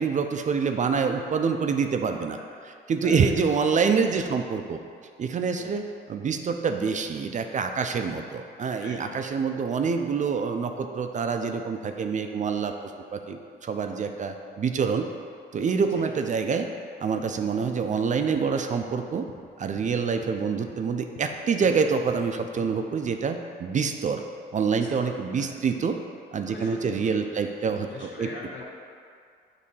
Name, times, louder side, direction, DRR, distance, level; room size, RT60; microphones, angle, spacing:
voice 1, 0.0-2.4 2.9-4.8 5.2-15.1 15.5-16.7 17.0-19.3 19.6-24.2 24.5-26.0 26.3-28.3, right 5 dB, 40° right, 6 dB, 0.4 m, -26 dB
voice 2, 8.8-9.2 9.5-9.6 15.9-16.1 24.7-25.6 26.5-28.6, left 3 dB, 70° left, -3 dB, 1.3 m, -42 dB
sound 1, 18.3-19.0 19.3-19.5 19.7-20.9 21.1-22.3 22.6-23.1, left 6 dB, 50° left, 0.8 m, -48 dB
6.4 x 2.7 x 5.4 m, 2.3 s
cardioid pair, 90°, 20 cm